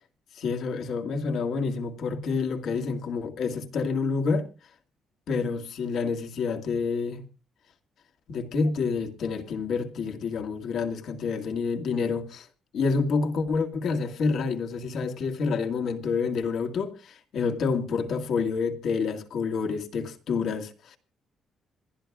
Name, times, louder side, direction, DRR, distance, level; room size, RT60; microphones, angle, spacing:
voice 1, 0.3-4.5 5.3-7.2 8.3-12.5 12.7-21.0, left 4 dB, 70° left, 2.2 m, -28 dB
27.0 x 11.5 x 2.4 m
cardioid pair, 90°, 0 cm